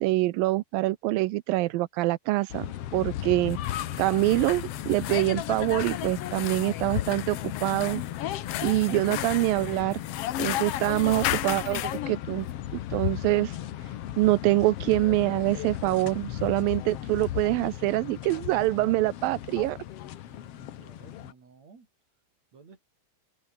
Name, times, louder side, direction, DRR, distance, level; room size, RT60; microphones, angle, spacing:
voice 1, 0.0-3.6 4.0-8.0 8.6-10.0 10.4-12.5 12.9-13.6 14.2-19.8, right 18 dB, 85° right, 2.5 m, -25 dB
sound 1, 2.5-21.3, left 12 dB, 65° left, 1.5 m, -35 dB
sound 2, 3.4-12.0, left 16 dB, 90° left, 2.8 m, -36 dB
voice 2, 20.3-21.9 22.5-22.8, right 5 dB, 50° right, 5.0 m, -55 dB
open air
omnidirectional pair, 4.0 m